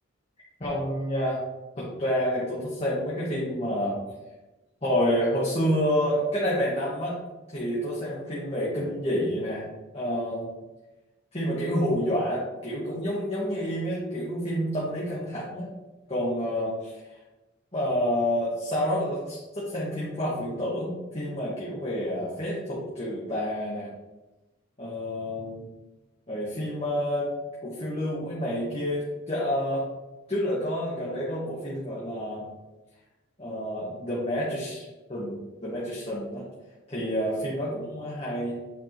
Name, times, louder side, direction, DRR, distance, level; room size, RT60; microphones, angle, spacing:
voice 1, 0.6-1.4 1.8-4.0 4.8-7.2 7.5-9.6 9.9-10.5 11.3-15.7 16.1-17.0 17.7-23.9 24.8-25.7 26.3-29.8 30.3-32.5 33.4-36.5 36.9-38.6, equal, 30° left, -7 dB, 1.4 m, -29 dB
8.2 x 4.7 x 3.0 m, 1.1 s
head